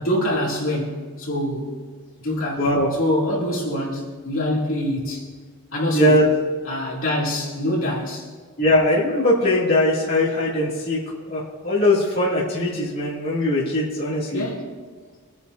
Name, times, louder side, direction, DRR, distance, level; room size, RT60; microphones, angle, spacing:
voice 1, 0.0-1.8 2.2-5.3 5.7-8.3 14.3-14.8, left 1 dB, 60° left, 3.0 m, -25 dB
voice 2, 2.6-2.9 5.9-6.2 8.6-14.4, left 1 dB, 45° left, 2.6 m, -20 dB
25.5 x 9.6 x 2.7 m
head